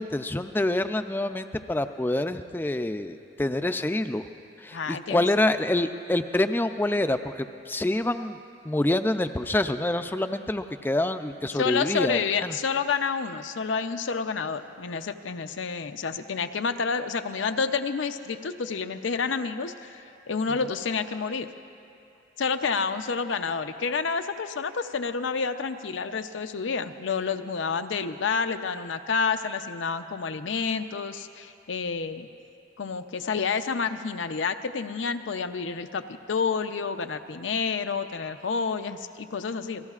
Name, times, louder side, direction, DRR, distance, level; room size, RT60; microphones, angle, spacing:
voice 1, 0.0-4.3 4.6-8.4 8.6-12.6, left 1 dB, 10° left, 9 dB, 0.4 m, -26 dB
voice 2, 4.7-5.3 11.5-21.5 22.4-32.3 32.8-36.0 36.3-39.8, left 5 dB, 85° left, 8 dB, 0.6 m, -29 dB
28.0 x 18.5 x 2.4 m, 2.5 s
head